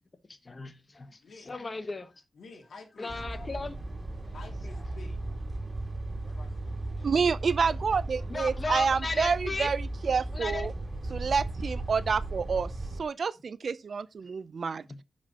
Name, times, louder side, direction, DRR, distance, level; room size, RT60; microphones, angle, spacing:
voice 1, 0.3-1.2 1.4-2.1 3.0-3.7 4.2-4.3 8.3-9.7 10.3-10.7, left 3 dB, 35° left, 1.1 m, -35 dB
voice 2, 1.2-1.5 2.3-3.2 4.3-5.2 6.2-7.1, left 3 dB, 85° left, 2.4 m, -50 dB
sound 1, 3.1-13.0, right 2 dB, 30° right, 2.3 m, -36 dB
voice 3, 7.0-10.7 11.1-12.7 13.0-15.0, right 5 dB, 60° right, 0.5 m, -28 dB
14.5 x 5.2 x 2.9 m
wide cardioid pair, 100°, 0 cm